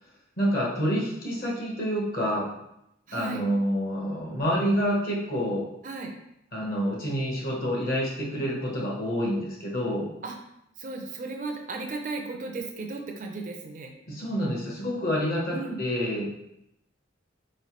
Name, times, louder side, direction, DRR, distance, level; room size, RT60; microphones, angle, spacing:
voice 1, 0.4-2.5 3.1-5.7 6.5-10.1 14.1-16.4, equal, 50° left, -3 dB, 1.0 m, -28 dB
voice 2, 3.1-3.4 5.8-6.1 10.2-10.4 10.8-13.9 15.5-15.8, right 3 dB, 40° right, 2 dB, 0.5 m, -35 dB
4.2 x 3.2 x 2.9 m, 0.83 s
head